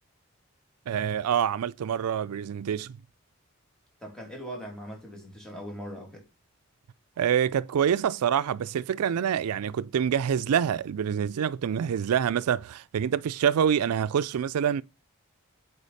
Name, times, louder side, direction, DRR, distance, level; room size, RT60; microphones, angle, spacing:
voice 1, 0.9-3.0 7.2-14.8, right 8 dB, 85° right, 0.4 m, -26 dB
voice 2, 4.0-6.3, equal, 5° left, 2.6 m, -40 dB
8.3 x 4.5 x 4.1 m
head